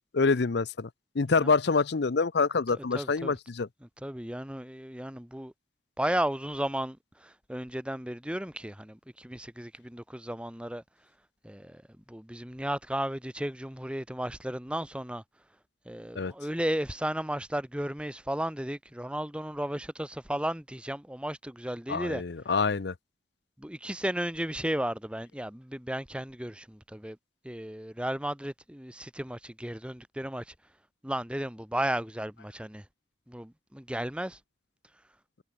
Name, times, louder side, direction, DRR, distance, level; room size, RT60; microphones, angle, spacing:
voice 1, 0.1-3.7 16.2-16.3 21.9-22.9, left 4 dB, 60° left, 0.6 m, -26 dB
voice 2, 2.7-3.3 4.0-5.5 6.0-10.8 11.4-11.8 12.1-15.2 15.9-22.2 23.6-27.2 27.4-30.5 31.0-32.8 33.3-34.4, right 1 dB, 5° right, 1.1 m, -34 dB
head